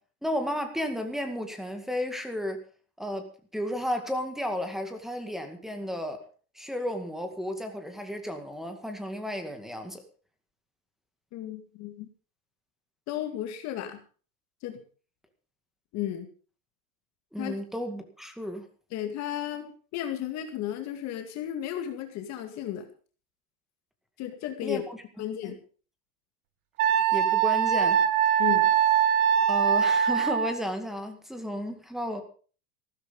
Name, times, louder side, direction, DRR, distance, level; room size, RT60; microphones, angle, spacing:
voice 1, 0.2-2.6 3.0-6.2 6.6-10.0 17.3-18.7 24.6-25.0 25.4-25.5 27.1-28.0 29.5-32.2, equal, ahead, 6 dB, 2.1 m, -33 dB
voice 2, 11.3-12.1 13.1-14.0 14.6-14.8 15.9-16.3 17.4-17.6 18.9-22.9 24.2-24.8 25.2-25.6 28.4-28.7, left 11 dB, 40° left, 5 dB, 2.2 m, -34 dB
Wind instrument woodwind instrument, 26.8-30.6, right 9 dB, 85° right, 2.0 m, -22 dB
15.0 x 13.0 x 5.3 m, 0.40 s
supercardioid pair, 155°, 43 cm